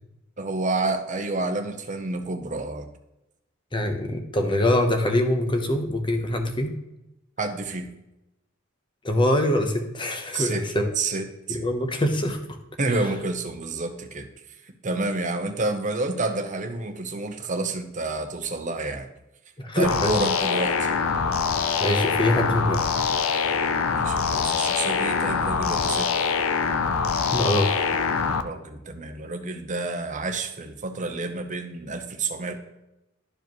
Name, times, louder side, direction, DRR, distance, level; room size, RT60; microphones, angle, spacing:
voice 1, 0.4-2.9 7.4-7.9 10.3-10.6 11.0-11.6 12.8-14.3 14.8-19.1 19.7-20.9 23.9-26.1 28.4-32.5, right 3 dB, 35° right, 6 dB, 0.8 m, -29 dB
voice 2, 3.7-6.8 9.0-10.9 11.5-12.6 13.0-13.1 19.6-20.1 21.8-22.9 27.3-27.7, left 1 dB, 25° left, 5 dB, 0.9 m, -24 dB
sound 1, 19.8-28.4, left 5 dB, 75° left, 0.6 m, -24 dB
12.0 x 4.8 x 3.1 m, 0.92 s
head